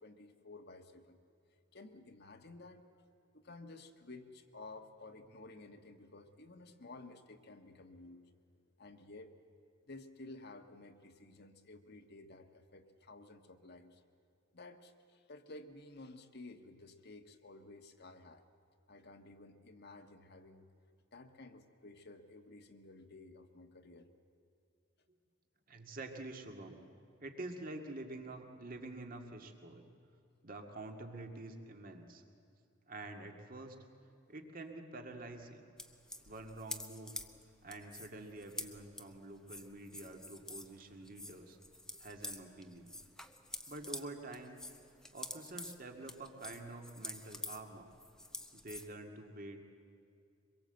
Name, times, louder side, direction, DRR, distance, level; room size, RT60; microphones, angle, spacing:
voice 1, 0.0-1.2 1.7-3.0 3.3-8.2 8.8-9.3 9.9-14.0 14.5-18.5 18.9-20.6 21.1-24.1 41.9-42.0 48.2-48.3, left 2 dB, 55° left, 7 dB, 1.4 m, -53 dB
voice 2, 25.7-26.8 27.2-29.8 30.4-32.2 32.9-33.8 34.3-35.7 36.2-37.2 37.6-41.6 42.0-42.9 43.7-44.7 45.1-47.9 48.5-49.6, right 2 dB, 45° right, 4 dB, 2.1 m, -47 dB
sound 1, 35.8-40.8 41.0-44.1 44.3-48.9, left 1 dB, 5° left, 0.9 m, -47 dB
24.5 x 22.0 x 7.9 m, 2.5 s
head